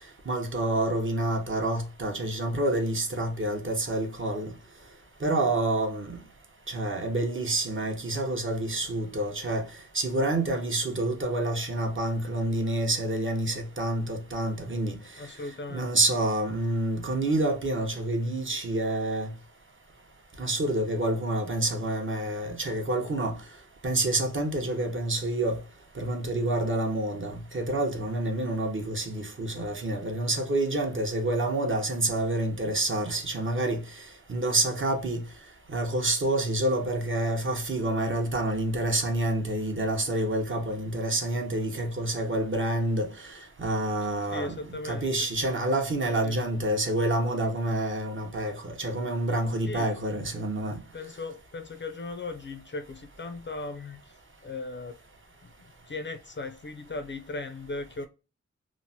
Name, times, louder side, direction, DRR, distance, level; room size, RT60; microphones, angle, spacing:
voice 1, 0.3-4.5 5.2-6.2 6.7-9.6 9.9-15.0 15.7-19.3 20.4-23.3 23.8-25.6 26.0-33.8 34.3-35.2 35.7-43.1 43.6-50.8, right 1 dB, 45° right, 0.7 m, -28 dB
voice 2, 15.2-15.9 44.0-45.3 46.2-46.4 49.7-49.9 50.9-54.2 54.4-55.0 55.4-58.1, left 3 dB, 40° left, 0.4 m, -38 dB
3.1 x 2.0 x 2.6 m
wide cardioid pair, 100°, 29 cm